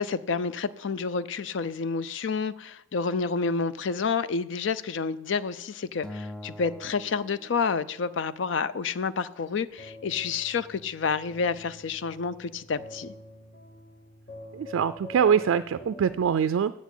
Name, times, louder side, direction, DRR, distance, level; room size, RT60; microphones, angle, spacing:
voice 1, 0.0-13.1, left 5 dB, 65° left, 15 dB, 0.4 m, -29 dB
Acoustic guitar, 6.0-8.4, left 1 dB, 5° left, 0.4 m, -43 dB
sound 1, 9.7-16.3, left 1 dB, 45° left, 0.9 m, -47 dB
voice 2, 14.5-16.7, right 7 dB, 80° right, 12 dB, 0.3 m, -24 dB
8.2 x 7.1 x 8.2 m, 0.88 s
head